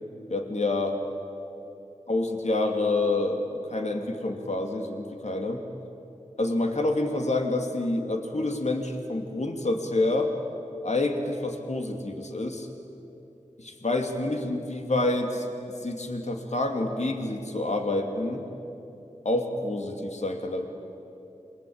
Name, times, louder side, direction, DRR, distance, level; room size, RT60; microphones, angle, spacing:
voice 1, 0.3-1.0 2.1-5.6 6.4-10.3 10.8-12.7 13.6-15.5 15.8-18.4 19.2-20.7, left 2 dB, 60° left, 3 dB, 2.7 m, -28 dB
28.0 x 23.5 x 8.8 m, 2.9 s
wide cardioid pair, 45°, 13 cm